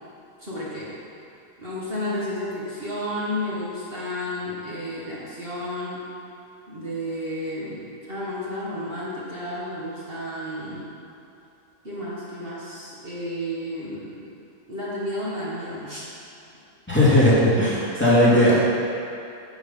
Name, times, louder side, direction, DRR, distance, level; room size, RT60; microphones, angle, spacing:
voice 1, 0.4-0.9 1.6-6.0 6.7-10.9 11.8-14.2 14.7-16.0, left 1 dB, 40° right, -8 dB, 1.9 m, -32 dB
voice 2, 16.9-18.7, left 1 dB, 10° left, -9 dB, 2.2 m, -17 dB
9.4 x 7.9 x 5.5 m, 2.7 s
omnidirectional pair, 1.5 m